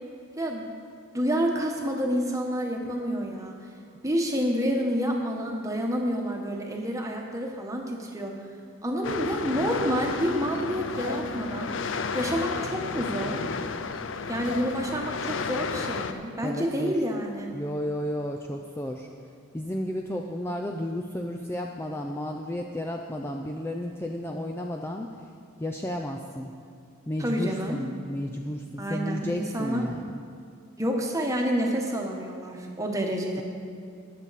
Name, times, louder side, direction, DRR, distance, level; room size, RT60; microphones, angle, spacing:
voice 1, 1.1-3.5 4.0-8.3 8.8-11.7 12.1-13.4 14.3-17.5 27.2-27.8 28.8-29.9 30.8-33.4, equal, 15° right, 1 dB, 1.2 m, -28 dB
sound 1, 9.0-16.1, left 5 dB, 60° left, 0.5 m, -32 dB
voice 2, 16.4-17.0 17.5-19.1 19.5-25.1 25.6-26.5 27.1-30.2, left 1 dB, 10° left, 1 dB, 0.4 m, -32 dB
21.0 x 7.3 x 4.1 m, 2.3 s
head